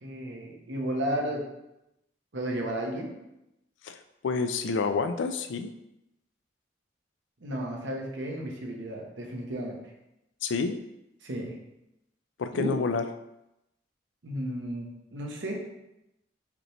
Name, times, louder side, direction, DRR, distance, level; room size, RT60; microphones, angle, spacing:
voice 1, 0.0-1.4 2.3-3.1 7.4-9.8 11.2-11.5 12.5-12.7 14.2-15.5, right 1 dB, 80° right, 0 dB, 0.9 m, -33 dB
voice 2, 3.8-5.7 10.4-10.8 12.4-13.0, left 4 dB, 80° left, 8 dB, 0.4 m, -29 dB
5.0 x 3.0 x 3.2 m, 0.88 s
head